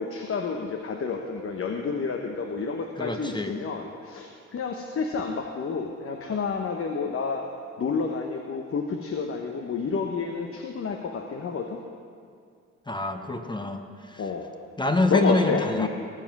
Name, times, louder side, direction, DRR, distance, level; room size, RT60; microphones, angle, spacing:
voice 1, 0.0-7.5 7.8-11.8 14.2-14.5 15.1-15.9, left 5 dB, 45° left, 3 dB, 1.0 m, -29 dB
voice 2, 3.0-3.6 12.9-14.2 14.8-15.9, left 2 dB, 15° left, 6 dB, 1.0 m, -26 dB
18.5 x 7.5 x 6.0 m, 2.3 s
cardioid pair, 90°, 30 cm